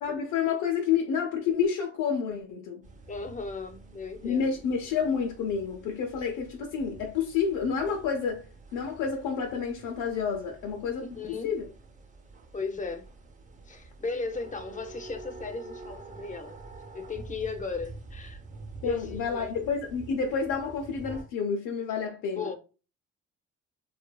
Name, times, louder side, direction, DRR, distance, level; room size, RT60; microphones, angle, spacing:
voice 1, 0.0-2.8 4.2-8.4 8.7-11.6 18.8-22.5, left 6 dB, 90° left, 0.6 m, -29 dB
sound 1, 2.8-21.2, right 3 dB, 25° right, 0.7 m, -47 dB
voice 2, 3.1-4.5 11.0-11.5 12.5-13.1 13.7-16.6 16.9-18.4 18.8-19.5 22.4-22.5, left 4 dB, 25° left, 0.5 m, -36 dB
2.7 x 2.5 x 2.2 m
cardioid pair, 90°, 30 cm